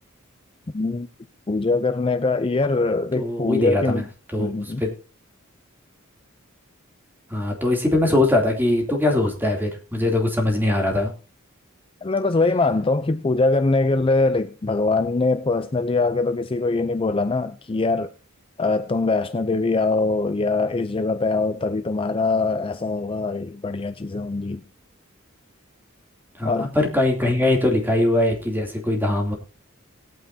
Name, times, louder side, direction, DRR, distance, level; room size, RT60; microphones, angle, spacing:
voice 1, 0.7-1.1 1.5-4.1 4.4-4.8 12.0-18.1 18.6-24.6 26.4-26.7, left 3 dB, 25° left, 0.5 m, -22 dB
voice 2, 3.1-4.0 4.3-4.9 7.3-11.1 26.4-29.3, left 1 dB, 10° right, 2.8 m, -21 dB
19.5 x 9.2 x 2.7 m
head